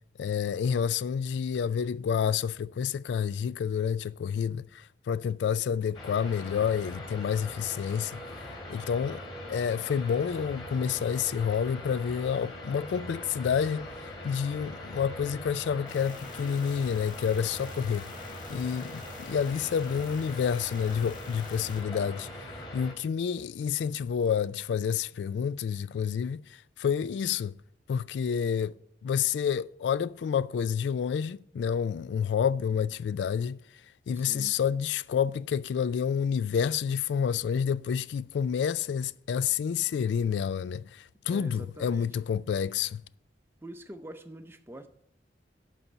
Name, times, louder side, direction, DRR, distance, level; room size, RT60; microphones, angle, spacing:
voice 1, 0.2-8.2 8.7-13.9 14.2-18.1 18.5-22.3 22.7-27.6 27.9-28.8 29.0-33.6 34.1-43.0, left 7 dB, 80° left, 0.3 m, -29 dB
sound 1, 5.9-22.9, left 1 dB, 25° left, 3.2 m, -42 dB
sound 2, 15.9-21.8, left 3 dB, 45° left, 1.5 m, -49 dB
voice 2, 34.1-34.6 41.2-42.1 43.6-44.9, right 1 dB, 15° right, 0.6 m, -45 dB
11.5 x 4.2 x 7.9 m
head